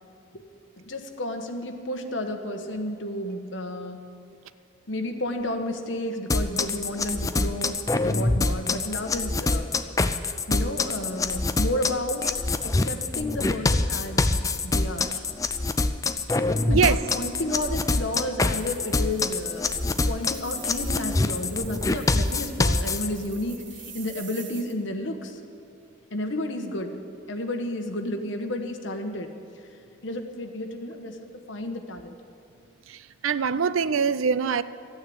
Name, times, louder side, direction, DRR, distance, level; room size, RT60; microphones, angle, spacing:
voice 1, 0.8-4.0 4.9-7.8 8.0-9.7 10.5-12.3 12.6-14.2 14.6-15.2 16.7-25.4 26.1-27.0 27.3-29.3 30.0-32.1, left 1 dB, 60° left, 5 dB, 1.3 m, -32 dB
sound 1, 6.3-23.1, left 3 dB, 15° left, 0.4 m, -25 dB
sound 2, 18.5-24.7, right 7 dB, 55° right, 1.7 m, -46 dB
voice 2, 32.9-34.6, right 6 dB, 75° right, 15 dB, 0.5 m, -23 dB
14.0 x 9.6 x 8.7 m, 2.5 s
head